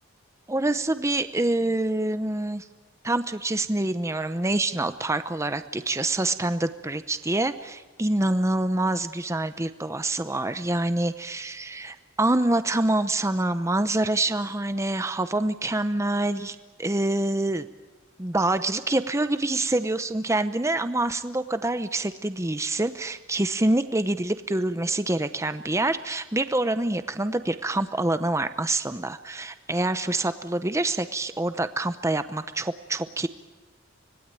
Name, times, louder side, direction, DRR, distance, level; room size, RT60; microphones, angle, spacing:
voice 1, 0.5-2.7 3.0-17.7 18.2-33.3, right 2 dB, 15° right, 11 dB, 0.7 m, -26 dB
25.5 x 19.5 x 9.0 m, 1.2 s
head